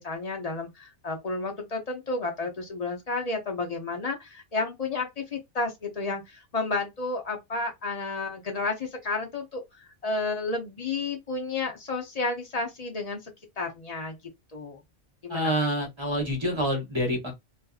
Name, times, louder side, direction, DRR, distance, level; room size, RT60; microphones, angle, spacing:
voice 1, 0.0-14.2 14.5-14.8 15.2-15.5, left 3 dB, 40° left, 0.6 m, -31 dB
voice 2, 15.3-17.3, equal, 25° right, 0.9 m, -27 dB
2.5 x 2.4 x 2.3 m
omnidirectional pair, 1.2 m